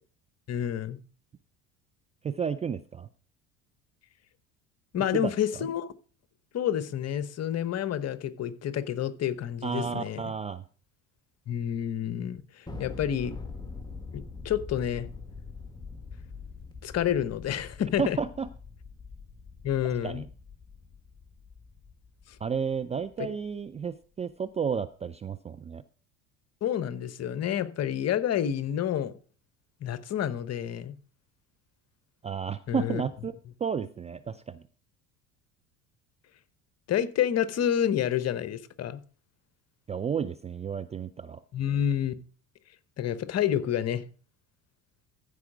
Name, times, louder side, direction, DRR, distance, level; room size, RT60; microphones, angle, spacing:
voice 1, 0.5-1.0 4.9-5.9 6.5-10.3 11.5-13.3 14.1-15.1 16.8-18.2 19.6-20.3 26.6-29.1 29.8-30.9 32.7-33.0 36.9-39.0 41.5-42.1 43.0-44.0, left 10 dB, 40° left, 1.0 m, -29 dB
voice 2, 2.2-3.1 5.1-5.3 9.6-10.6 18.0-18.5 20.0-20.2 22.4-25.8 32.2-34.6 39.9-41.4, right 6 dB, 15° right, 0.4 m, -32 dB
Thunder, 12.7-23.3, left 4 dB, 10° left, 1.6 m, -44 dB
14.5 x 4.9 x 4.8 m
hypercardioid pair, 65°, 39 cm